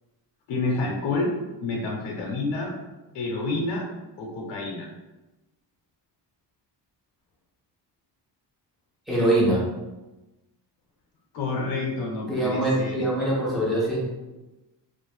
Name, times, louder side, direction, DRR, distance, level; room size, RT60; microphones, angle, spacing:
voice 1, 0.5-1.3 1.6-2.7 3.1-3.9 4.2-4.9 11.3-13.0, left 3 dB, 80° left, -2 dB, 0.7 m, -28 dB
voice 2, 9.1-9.6 12.3-14.0, right 1 dB, ahead, -7 dB, 0.6 m, -23 dB
2.5 x 2.1 x 3.1 m, 1.1 s
cardioid pair, 165°, 43 cm